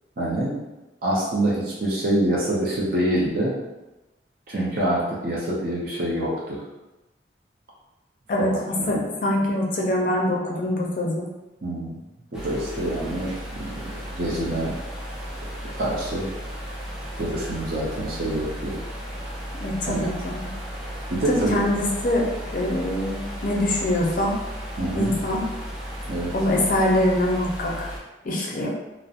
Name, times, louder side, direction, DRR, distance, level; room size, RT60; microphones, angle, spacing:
voice 1, 0.2-0.6 1.0-3.5 4.5-6.6 8.4-9.0 11.6-12.0 12.3-14.7 15.7-16.3 17.2-18.8 19.8-20.1 21.1-21.6 24.8-25.1 26.1-26.3, right 1 dB, 50° right, -5 dB, 0.5 m, -26 dB
voice 2, 8.9-11.2 19.6-20.5 21.3-22.2 22.5-24.4 24.9-25.4 26.3-27.9 28.2-28.7, left 1 dB, 45° left, -2 dB, 0.5 m, -24 dB
sound 1, 12.3-28.0, equal, 5° right, 0.5 m, -35 dB
2.7 x 2.0 x 2.4 m, 1.0 s
head